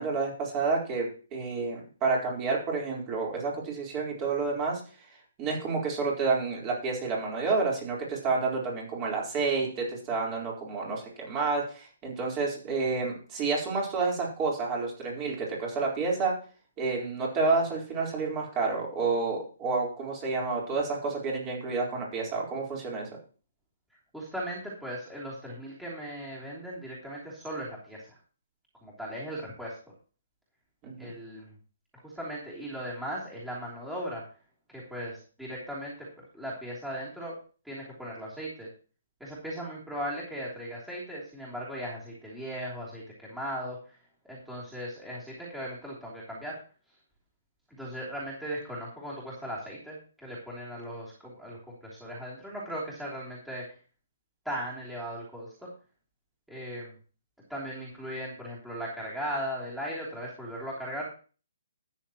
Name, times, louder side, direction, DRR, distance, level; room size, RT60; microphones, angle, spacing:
voice 1, 0.0-4.8 5.4-16.3 16.8-23.1 30.8-31.1, right 4 dB, 25° right, -2 dB, 4.1 m, -29 dB
voice 2, 24.1-28.2 28.8-29.8 31.0-31.5 32.0-34.2 34.7-37.4 37.6-38.7 39.2-44.0 44.2-46.6 47.8-53.7 54.4-55.7 56.5-56.9 57.5-61.1, equal, 5° right, -7 dB, 3.2 m, -38 dB
13.0 x 9.5 x 3.0 m, 0.37 s
hypercardioid pair, 155°, 0 cm